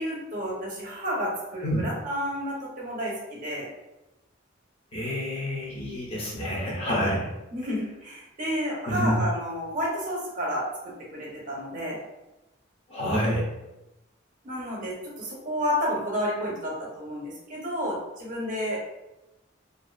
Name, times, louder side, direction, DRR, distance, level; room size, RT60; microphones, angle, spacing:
voice 1, 0.0-3.7 7.5-12.0 14.4-18.8, equal, 45° right, -3 dB, 0.7 m, -31 dB
voice 2, 4.9-7.3 8.9-9.1 12.9-13.5, equal, 30° left, -5 dB, 0.7 m, -28 dB
2.5 x 2.3 x 2.3 m, 0.97 s
head